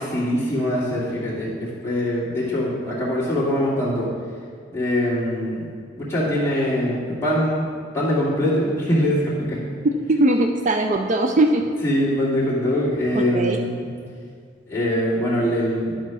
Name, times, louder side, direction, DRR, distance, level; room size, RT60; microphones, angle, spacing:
voice 1, 0.0-4.1 4.7-7.7 7.9-9.6 11.8-13.9 14.7-16.0, equal, 15° left, -9 dB, 2.5 m, -23 dB
voice 2, 9.8-11.6 13.3-13.6, right 1 dB, 40° right, 4 dB, 0.4 m, -19 dB
11.0 x 4.3 x 6.1 m, 2.1 s
head